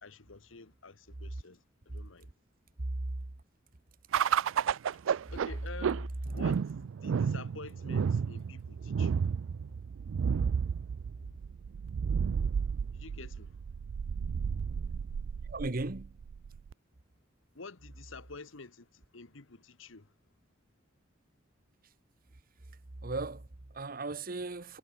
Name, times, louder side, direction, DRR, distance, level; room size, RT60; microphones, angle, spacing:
voice 1, 0.0-2.3 5.3-6.7 7.0-9.2 12.9-13.6 17.5-20.1, left 4 dB, 85° left, 1.4 m, -49 dB
voice 2, 2.8-3.2 15.4-16.2 23.0-24.8, right 2 dB, 45° right, 1.1 m, -36 dB
sound 1, 4.1-16.7, right 6 dB, 85° right, 0.4 m, -32 dB
head